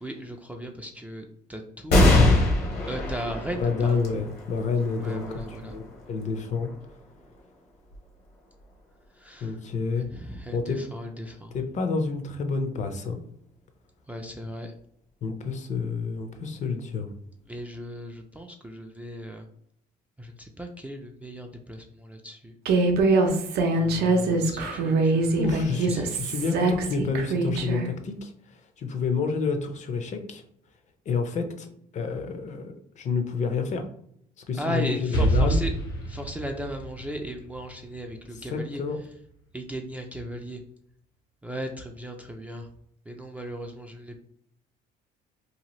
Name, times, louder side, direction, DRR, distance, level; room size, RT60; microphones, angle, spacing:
voice 1, 0.0-2.2 2.9-4.0 5.0-5.7 9.2-9.6 10.0-11.6 14.1-14.7 17.5-19.4 20.2-22.5 23.7-26.2 34.6-35.7 36.1-38.8 39.5-40.6 41.4-42.7 43.1-44.2, equal, 10° right, 2 dB, 0.3 m, -37 dB
sound 1, 1.9-8.8 9.4-9.5 10.6-11.2, left 2 dB, 70° left, 0.9 m, -25 dB
voice 2, 3.6-6.7 9.4-10.1 10.5-10.8 11.5-13.2 15.2-17.1 25.4-28.3 28.8-30.4 31.1-33.8 34.5-35.6 38.5-39.0, left 5 dB, 45° left, 7 dB, 0.5 m, -29 dB
Human voice, 22.6-27.9, right 3 dB, 75° right, 0.6 m, -23 dB
Explosion, 35.1-38.9, right 1 dB, 90° left, 1.2 m, -28 dB
2.8 x 2.4 x 2.9 m, 0.69 s
cardioid pair, 110°, 17 cm